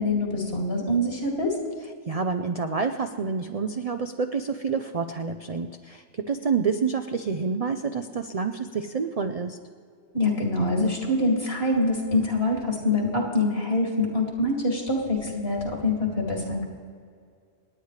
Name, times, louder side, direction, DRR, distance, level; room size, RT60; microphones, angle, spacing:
voice 1, 0.0-1.5 10.1-16.7, left 2 dB, 50° left, -1 dB, 2.7 m, -25 dB
voice 2, 2.1-9.6, right 5 dB, 50° right, 6 dB, 0.4 m, -28 dB
28.5 x 9.6 x 3.3 m, 2.2 s
omnidirectional pair, 1.3 m